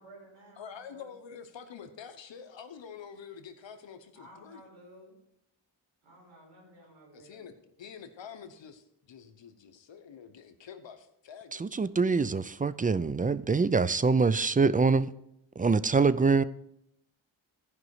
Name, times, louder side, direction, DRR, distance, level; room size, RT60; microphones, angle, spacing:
voice 1, 0.0-1.1 4.1-5.1 6.0-7.4, right 1 dB, 90° right, -2 dB, 4.7 m, -54 dB
voice 2, 0.6-4.6 7.1-7.5 7.8-11.9, left 7 dB, 70° left, 8 dB, 1.1 m, -47 dB
voice 3, 11.5-15.1 15.6-16.4, right 4 dB, 20° right, 16 dB, 0.3 m, -25 dB
14.5 x 5.3 x 4.8 m, 0.77 s
cardioid pair, 75°, 46 cm